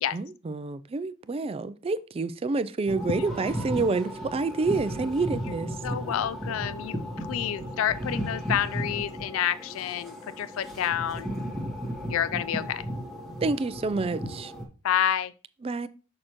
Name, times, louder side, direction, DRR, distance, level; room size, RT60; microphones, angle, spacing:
voice 1, 0.1-5.8 13.4-14.5 15.6-15.9, right 3 dB, 30° right, 0.4 m, -28 dB
sound 1, 2.9-14.7, equal, ahead, 1.6 m, -35 dB
voice 2, 5.8-11.3 12.1-12.8 14.8-15.3, left 10 dB, 70° left, 0.3 m, -29 dB
6.5 x 6.3 x 3.0 m
head